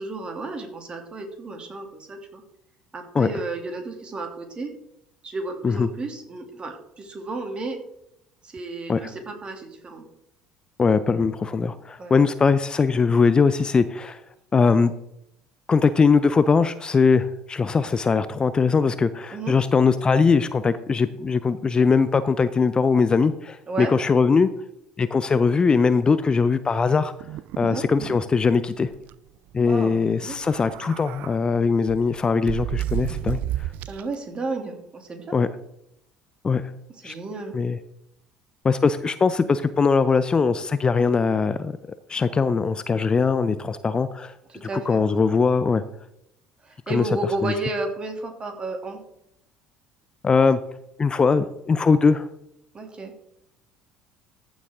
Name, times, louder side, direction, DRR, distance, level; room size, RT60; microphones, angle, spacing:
voice 1, 0.0-2.4 2.9-4.7 5.2-7.8 8.4-10.0 12.0-12.2 19.3-19.6 23.7-23.9 27.6-27.8 29.7-30.4 33.8-35.4 36.9-37.6 44.5-45.0 46.6-49.0 52.7-53.1, right 3 dB, 30° right, 4 dB, 2.7 m, -32 dB
voice 2, 10.8-14.2 14.5-14.9 15.7-24.5 25.0-27.1 27.6-28.9 29.5-33.7 35.3-35.5 36.4-36.6 37.0-37.1 37.5-37.8 38.6-41.7 42.1-44.3 44.6-45.8 46.9-47.0 47.4-47.5 50.2-50.6 51.0-52.3, left 5 dB, 25° left, 14 dB, 0.6 m, -21 dB
sound 1, 27.2-28.2 28.5-28.6 28.9-29.1 30.3-31.4 31.9-34.1, right 14 dB, 60° right, 0.3 m, -31 dB
14.5 x 7.2 x 3.7 m, 0.79 s
hypercardioid pair, 60°, 3 cm